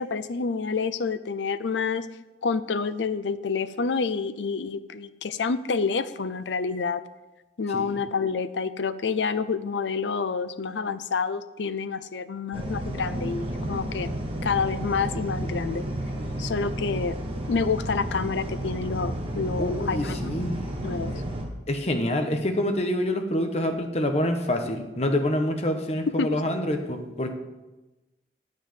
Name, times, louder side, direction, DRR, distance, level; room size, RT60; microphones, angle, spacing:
voice 1, 0.0-2.1 2.4-7.0 7.6-14.1 14.4-15.8 16.4-17.2 17.5-20.3 20.8-21.1 26.2-26.4, left 5 dB, 90° left, 13 dB, 0.6 m, -28 dB
sound 1, 12.5-21.4, right 1 dB, 30° right, 1.6 m, -32 dB
voice 2, 19.6-20.6 21.1-21.2 21.7-27.3, left 1 dB, 35° left, 5 dB, 1.1 m, -27 dB
9.2 x 6.7 x 6.8 m, 1.1 s
head